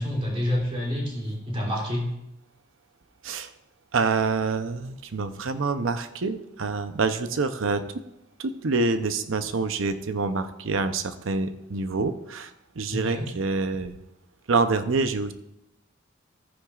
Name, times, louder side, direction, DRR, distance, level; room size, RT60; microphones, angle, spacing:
voice 1, 0.0-2.1 12.9-13.3, left 1 dB, 30° right, -3 dB, 3.1 m, -28 dB
voice 2, 3.9-7.8 8.4-13.9 14.5-15.3, right 4 dB, 75° right, 10 dB, 0.7 m, -26 dB
14.0 x 9.7 x 2.4 m, 0.86 s
head